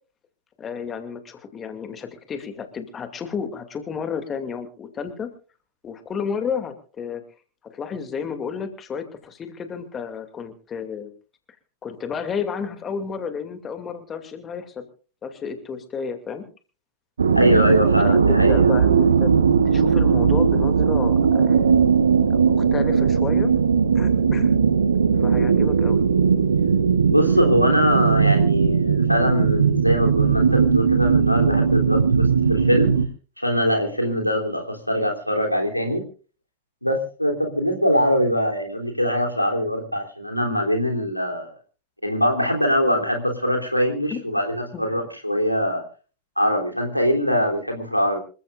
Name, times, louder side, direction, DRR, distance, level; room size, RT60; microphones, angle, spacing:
voice 1, 0.6-5.3 5.8-7.2 7.6-11.1 11.8-14.9 15.2-16.5 18.0-19.3 19.6-21.7 22.2-23.5 23.9-24.5 25.2-26.0 34.0-34.1 44.1-44.2 44.7-44.8, left 6 dB, 25° left, 7 dB, 2.5 m, -32 dB
sound 1, 17.2-33.1, right 6 dB, 70° right, 1.2 m, -18 dB
voice 2, 17.3-18.7 27.1-32.9 33.4-36.0 36.8-41.5 42.0-45.8 46.4-48.2, equal, 90° left, 3 dB, 3.4 m, -22 dB
26.5 x 15.0 x 2.5 m, 0.38 s
figure-of-eight pair, 90°, 0 cm